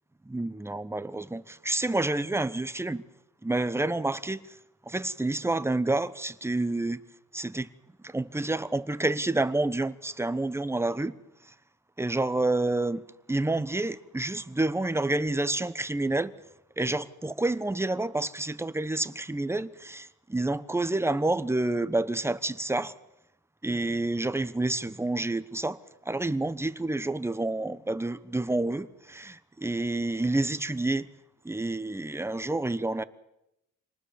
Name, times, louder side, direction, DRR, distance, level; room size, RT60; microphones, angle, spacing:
voice 1, 0.3-3.0 3.4-4.4 4.9-7.0 7.3-7.7 8.0-11.1 12.0-13.0 13.3-16.3 16.8-22.9 23.6-25.8 26.1-31.1 31.4-33.0, right 2 dB, 10° right, 1.0 m, -29 dB
26.0 x 19.5 x 7.1 m
cardioid pair, 90°, 30 cm